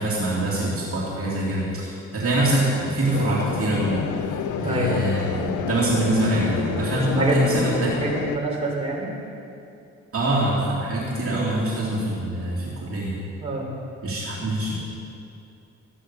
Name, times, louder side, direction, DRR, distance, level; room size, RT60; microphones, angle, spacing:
voice 1, 0.0-4.3 4.6-8.0 10.1-13.1 14.0-14.7, right 1 dB, 50° right, -6 dB, 2.9 m, -24 dB
sound 1, 3.1-8.4, left 8 dB, 85° left, 0.7 m, -29 dB
voice 2, 4.6-5.1 6.9-7.6 8.0-9.1 13.4-13.7, right 2 dB, 20° right, -4 dB, 3.9 m, -26 dB
14.5 x 9.8 x 5.8 m, 2.7 s
cardioid pair, 90°, 30 cm